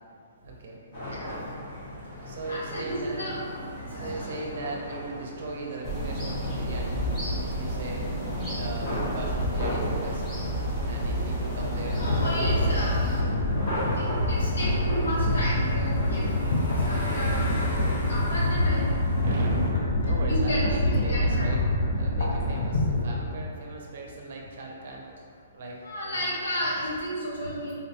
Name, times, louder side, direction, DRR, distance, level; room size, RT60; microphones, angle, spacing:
voice 1, 0.4-0.8 2.3-3.3 3.9-7.1 7.4-8.0 8.4-10.3 10.8-12.1 14.9-15.3 19.2-25.0 25.5-25.8 26.1-26.3, right 2 dB, 55° right, -1 dB, 0.5 m, -37 dB
sound 1, 0.9-19.7, left 1 dB, 45° left, 1.0 m, -34 dB
voice 2, 2.5-4.3 7.7-7.8 12.0-13.1 13.9-18.9 20.3-21.5 25.8-27.7, equal, 85° left, -6 dB, 1.1 m, -32 dB
sound 2, 5.8-13.2, equal, 10° left, 0.7 m, -30 dB
sound 3, 11.8-23.3, left 1 dB, 65° left, 0.6 m, -26 dB
3.7 x 2.2 x 2.7 m, 2.4 s
hypercardioid pair, 160°, 0 cm